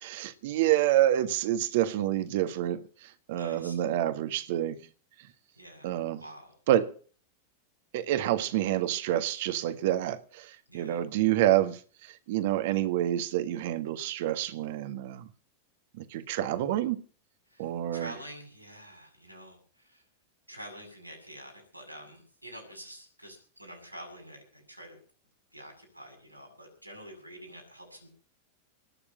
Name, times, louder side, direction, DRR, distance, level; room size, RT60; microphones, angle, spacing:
voice 1, 0.0-4.8 5.8-6.2 6.7-6.9 7.9-15.3 16.0-17.0 17.6-18.1, right 13 dB, 50° right, 1.7 m, -28 dB
voice 2, 3.4-3.8 5.6-5.9 6.2-6.6 10.7-11.0 17.5-20.0 20.5-25.0 25.5-28.1, equal, 90° right, 7.2 m, -47 dB
19.5 x 7.0 x 8.7 m
figure-of-eight pair, 90°, 0 cm